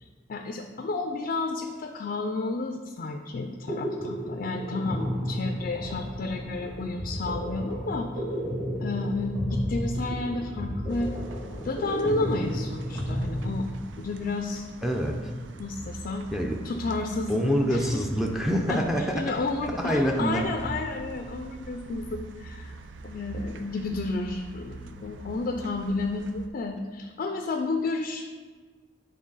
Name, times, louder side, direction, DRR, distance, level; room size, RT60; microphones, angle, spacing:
voice 1, 0.0-8.3 8.8-11.1 11.6-13.7 14.0-14.7 15.6-16.3 16.6-17.4 17.7-17.8 18.7-28.3, left 3 dB, 50° left, 4 dB, 0.4 m, -31 dB
sound 1, 3.4-14.2, equal, 30° right, 2.0 m, -32 dB
sound 2, 10.9-26.5, right 3 dB, 90° right, 0.5 m, -43 dB
voice 2, 14.8-15.3 16.3-16.6 17.3-19.2 19.8-20.5, equal, ahead, 0 dB, 0.5 m, -26 dB
8.7 x 3.3 x 3.9 m, 1.5 s
head